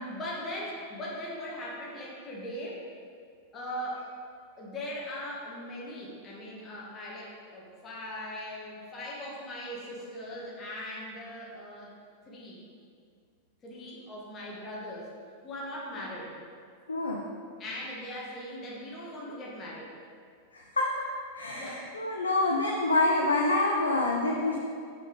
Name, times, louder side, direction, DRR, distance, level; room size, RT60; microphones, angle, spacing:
voice 1, 0.1-2.9 3.5-4.1 4.6-11.9 12.3-12.6 13.6-15.1 15.4-16.4 17.6-20.0 21.5-21.8, left 1 dB, 25° left, -5 dB, 1.5 m, -39 dB
voice 2, 16.9-17.2 20.5-21.0 21.3-24.6, left 2 dB, 75° left, -1 dB, 0.6 m, -27 dB
6.0 x 5.7 x 3.8 m, 2.2 s
figure-of-eight pair, 90°, 0 cm